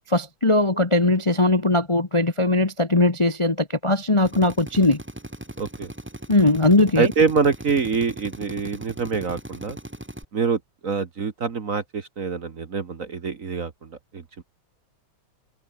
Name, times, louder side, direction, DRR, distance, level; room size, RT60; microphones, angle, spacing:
voice 1, 0.1-5.0 6.3-7.1, left 2 dB, 20° left, 1.0 m, -20 dB
Drill, 4.2-10.2, right 1 dB, 5° right, 1.2 m, -38 dB
voice 2, 5.6-5.9 7.0-9.8 10.3-14.4, right 5 dB, 40° right, 1.6 m, -25 dB
omnidirectional pair, 2.4 m